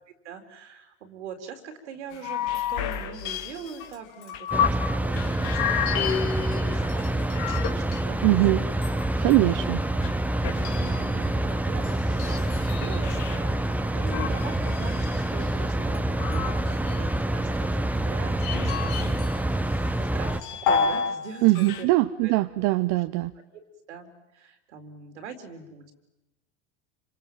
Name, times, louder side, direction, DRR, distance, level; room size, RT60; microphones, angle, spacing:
voice 1, 0.2-8.2 8.6-8.7 9.1-9.6 9.9-10.0 10.5-19.2 19.5-21.9 22.2-22.3 22.6-22.7 23.9-25.9, right 6 dB, 85° right, 6 dB, 4.2 m, -42 dB
sound 1, 2.1-4.9 5.1-8.3 8.7-13.4 14.1-17.1 17.8-19.4 19.7-21.2 21.4-21.8, left 7 dB, 65° left, 3.1 m, -31 dB
sound 2, 4.5-20.4, right 1 dB, 5° right, 1.3 m, -27 dB
voice 2, 8.2-8.6 9.2-9.8 21.4-23.3, right 20 dB, 60° right, 10 dB, 1.0 m, -21 dB
27.5 x 26.5 x 7.8 m, 0.95 s
hypercardioid pair, 85°, 34 cm